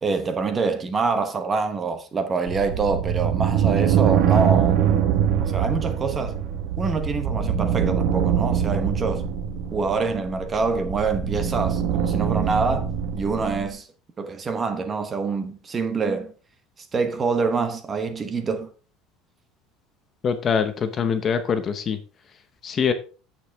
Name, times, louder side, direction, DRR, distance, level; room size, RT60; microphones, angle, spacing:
voice 1, 0.0-4.9 5.4-6.4 6.8-9.3 9.7-12.9 13.1-13.9 14.2-16.3 16.9-18.7, right 4 dB, 20° right, 1.0 m, -26 dB
sound 1, 2.5-13.7, right 8 dB, 60° right, 1.3 m, -23 dB
voice 2, 20.2-22.0 22.6-22.9, left 6 dB, 25° left, 0.7 m, -23 dB
9.0 x 7.9 x 3.5 m
cardioid pair, 170°, 0 cm